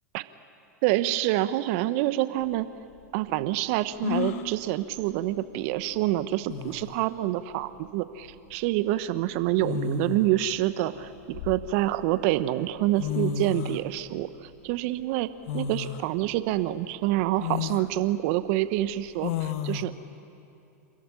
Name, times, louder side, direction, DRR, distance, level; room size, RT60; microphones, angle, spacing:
voice 1, 0.8-2.7 3.1-19.9, right 15 dB, 55° right, 13 dB, 1.0 m, -27 dB
sound 1, 2.4-2.5 4.0-4.5 6.0-6.1 6.5-7.0 8.3-8.5 9.6-10.4 11.0-12.0 12.7-12.8 13.0-13.9 15.5-16.1 16.6-16.7 17.4-17.9 19.2-19.8, left 9 dB, 60° left, 1.3 m, -31 dB
26.5 x 14.0 x 9.8 m, 2.8 s
hypercardioid pair, 105°, 9 cm